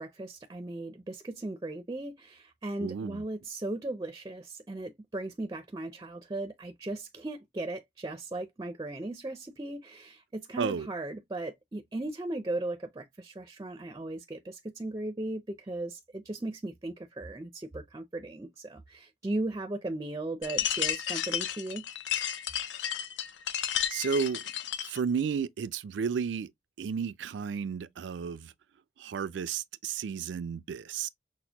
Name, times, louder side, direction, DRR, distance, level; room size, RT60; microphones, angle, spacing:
voice 1, 0.0-21.8, right 2 dB, 20° right, 0.4 m, -37 dB
voice 2, 2.8-3.2 10.6-10.9 23.9-24.4 24.9-26.5 26.8-28.5 29.0-31.1, right 6 dB, 85° right, 0.4 m, -32 dB
sound 1, 20.4-25.0, left 10 dB, 75° left, 0.5 m, -32 dB
6.0 x 2.1 x 2.8 m
head